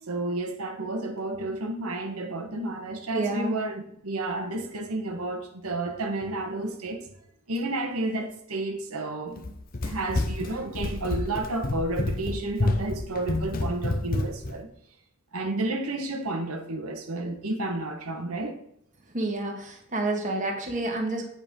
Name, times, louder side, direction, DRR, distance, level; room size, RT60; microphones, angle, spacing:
voice 1, 0.0-7.1 7.5-9.4 9.8-14.7 15.3-18.5, right 2 dB, 85° right, 3 dB, 1.3 m, -31 dB
voice 2, 3.1-3.6 19.1-21.2, right 2 dB, 35° right, 1 dB, 1.5 m, -29 dB
Run, 9.4-14.6, left 2 dB, 40° left, 0.7 m, -29 dB
8.9 x 5.4 x 5.3 m, 0.73 s
head